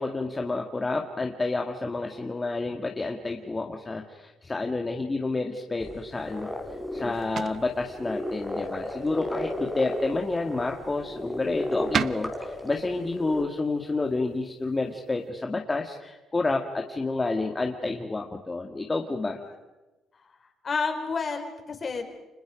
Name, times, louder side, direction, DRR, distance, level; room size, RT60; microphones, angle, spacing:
voice 1, 0.0-6.5 6.9-19.4, left 3 dB, 20° left, 3 dB, 2.0 m, -29 dB
sound 1, 5.8-13.4, left 1 dB, ahead, 3.8 m, -35 dB
sound 2, 6.1-15.3, right 7 dB, 50° right, 0.8 m, -39 dB
voice 2, 20.6-22.0, left 4 dB, 40° left, 5 dB, 4.5 m, -31 dB
30.0 x 26.0 x 5.2 m, 1.1 s
cardioid pair, 100°, 0 cm